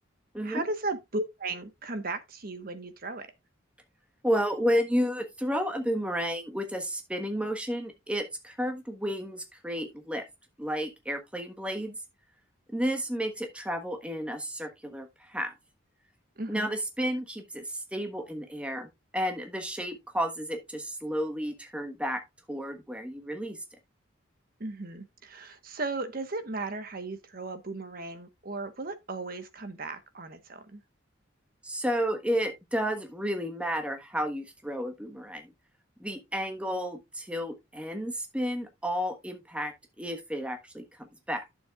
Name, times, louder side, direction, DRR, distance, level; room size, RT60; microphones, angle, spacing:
voice 1, 0.4-3.3 16.4-16.7 24.6-30.8, right 2 dB, 45° right, 1.2 m, -36 dB
voice 2, 4.2-10.2 10.6-12.0 12.7-15.5 16.5-18.9 19.1-22.2 22.5-23.6 31.6-35.5 36.0-40.8 41.3-41.4, equal, 5° right, 1.2 m, -31 dB
11.0 x 7.1 x 2.4 m
head